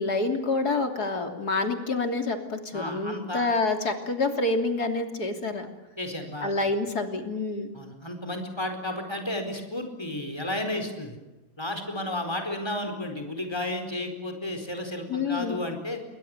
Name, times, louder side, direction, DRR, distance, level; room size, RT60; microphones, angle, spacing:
voice 1, 0.0-5.7 6.4-7.7 15.1-15.6, left 3 dB, 65° left, 5 dB, 3.6 m, -27 dB
voice 2, 2.7-3.5 6.0-6.5 7.7-11.2 11.6-16.0, left 1 dB, 15° left, 5 dB, 4.5 m, -32 dB
28.0 x 23.0 x 8.0 m, 1.0 s
omnidirectional pair, 1.8 m